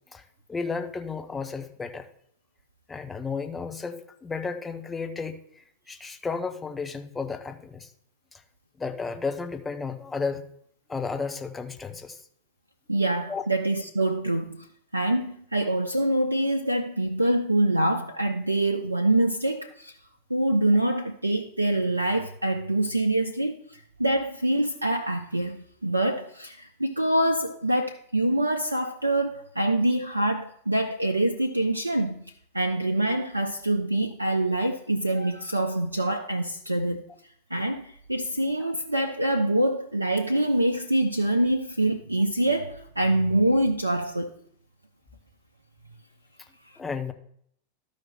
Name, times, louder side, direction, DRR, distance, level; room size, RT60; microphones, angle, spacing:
voice 1, 0.5-2.1 2.9-7.9 8.3-8.4 8.8-10.4 10.9-12.2 13.3-13.4 38.6-38.7 46.8-47.1, left 4 dB, 15° left, 0.9 m, -33 dB
voice 2, 12.9-14.7 14.9-20.0 20.3-32.2 32.5-37.1 37.5-44.3, right 1 dB, 85° right, 0.5 m, -25 dB
13.0 x 5.0 x 4.2 m
figure-of-eight pair, 90°, 0 cm